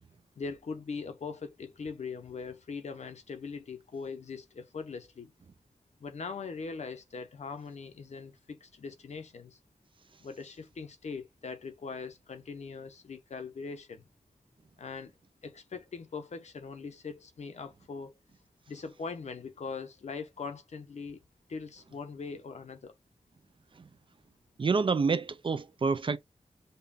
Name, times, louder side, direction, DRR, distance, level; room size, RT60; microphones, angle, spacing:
voice 1, 0.4-5.3 6.0-9.6 10.2-14.0 14.8-15.1 15.4-18.2 18.7-21.2 21.5-22.9, left 5 dB, 70° left, 0.7 m, -41 dB
voice 2, 24.6-26.2, right 4 dB, 45° right, 0.4 m, -27 dB
5.3 x 2.3 x 2.6 m
wide cardioid pair, 85°, 12 cm